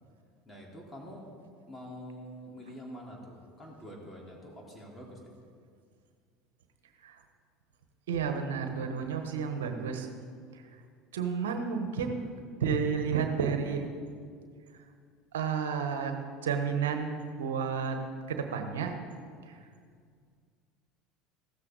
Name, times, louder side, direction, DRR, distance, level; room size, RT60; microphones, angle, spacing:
voice 1, 0.5-1.3 1.7-5.3, equal, 20° left, -2 dB, 3.9 m, -46 dB
voice 2, 8.1-10.1 10.5-10.6 11.1-12.2 12.6-13.9 15.3-16.2 16.4-17.1 17.4-18.0 18.3-18.9 19.5-19.6, right 6 dB, 75° right, 6 dB, 1.2 m, -31 dB
15.5 x 13.5 x 4.0 m, 2.1 s
hypercardioid pair, 70°, 0 cm